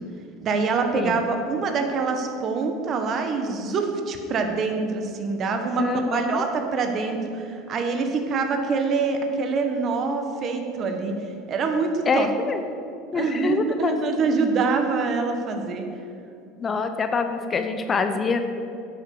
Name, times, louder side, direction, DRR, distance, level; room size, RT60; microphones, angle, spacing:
voice 1, 0.4-12.3 13.1-15.9, right 4 dB, 45° right, 5 dB, 1.5 m, -25 dB
voice 2, 5.8-6.4 12.1-12.6 13.1-13.9 16.6-18.4, left 4 dB, 30° left, 8 dB, 0.9 m, -25 dB
10.5 x 6.7 x 6.9 m, 2.5 s
hypercardioid pair, 85°, 0 cm